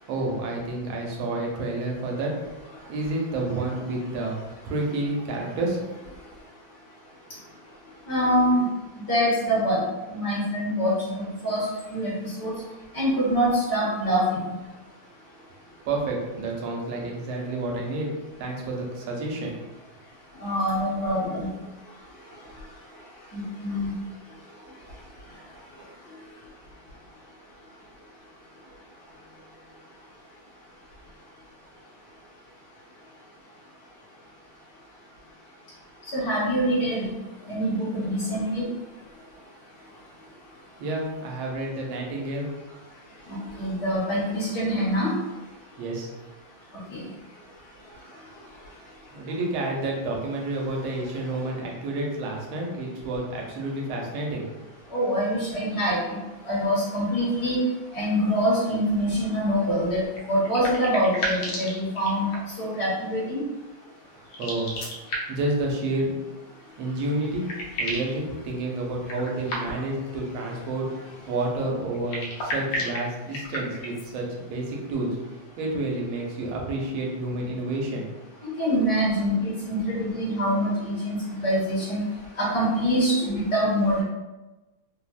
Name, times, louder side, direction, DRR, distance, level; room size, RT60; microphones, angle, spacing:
voice 1, 0.1-2.4 2.9-5.8 15.9-18.1 18.4-19.6 40.8-42.5 45.8-46.1 49.1-54.5 64.0-64.8 65.3-66.3 66.8-67.5 67.8-78.1, right 2 dB, 85° right, -1 dB, 1.5 m, -29 dB
voice 2, 8.1-8.6 9.1-9.8 10.1-12.5 12.9-14.4 20.4-21.5 23.3-23.9 36.1-37.1 37.5-38.6 43.3-45.1 46.9-47.0 54.9-56.2 56.4-57.6 57.9-62.3 62.6-63.4 78.4-82.0 82.4-84.0, equal, 55° left, -8 dB, 1.4 m, -25 dB
sound 1, 60.1-62.6 64.2-65.5 66.9-67.0 67.2-68.2 69.0-70.0 71.9-74.1, equal, 75° left, 1.3 m, -33 dB
3.7 x 2.0 x 2.4 m, 1.1 s
omnidirectional pair, 2.3 m